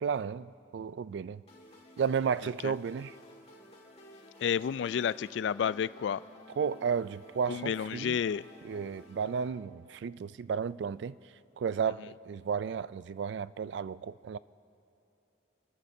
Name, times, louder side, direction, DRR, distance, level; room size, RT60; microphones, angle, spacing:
voice 1, 0.0-1.4 2.0-3.1 6.6-8.2 8.6-11.2 11.6-14.4, right 6 dB, 65° right, 0.3 m, -33 dB
sound 1, 1.5-9.5, left 1 dB, 35° left, 1.8 m, -54 dB
voice 2, 4.4-6.2 7.5-8.4, left 7 dB, 70° left, 0.3 m, -30 dB
29.0 x 14.0 x 2.7 m
head